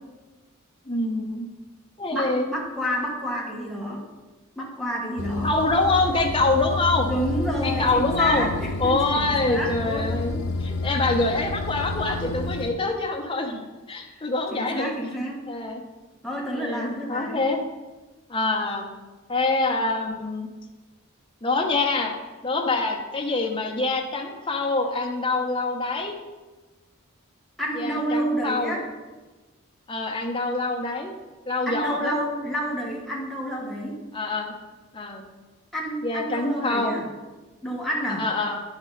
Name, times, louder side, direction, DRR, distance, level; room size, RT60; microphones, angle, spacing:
voice 1, 0.9-1.5 2.0-2.5 5.4-7.1 7.6-8.5 8.8-10.3 10.6-14.9 15.5-15.8 16.6-17.6 18.3-18.9 19.3-20.5 21.4-22.1 22.4-26.1 27.7-28.8 29.9-31.1 31.5-32.2 34.1-34.5 34.9-35.2 36.0-37.0 38.2-38.6, left 3 dB, 25° left, 2 dB, 0.9 m, -25 dB
voice 2, 2.1-4.0 4.5-5.5 7.0-10.4 11.3-11.4 14.5-15.5 16.2-17.4 27.6-28.9 31.7-34.0 35.7-37.0 37.6-38.3, equal, ahead, -3 dB, 1.4 m, -29 dB
sound 1, 5.2-12.7, left 2 dB, 65° left, 0.5 m, -30 dB
9.5 x 6.2 x 4.0 m, 1.2 s
head